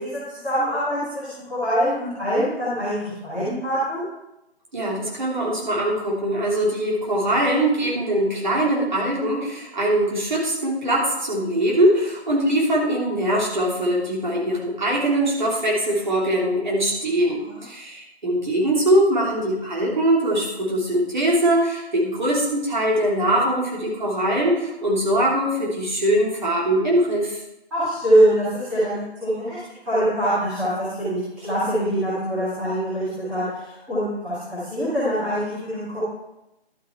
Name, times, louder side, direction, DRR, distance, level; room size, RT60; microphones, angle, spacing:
voice 1, 0.0-4.0 17.2-17.6 27.7-36.0, right 1 dB, 5° right, -15 dB, 2.0 m, -24 dB
voice 2, 4.7-27.4, right 1 dB, 45° right, -4 dB, 3.3 m, -22 dB
12.0 x 7.6 x 4.6 m, 0.90 s
figure-of-eight pair, 160°, 33 cm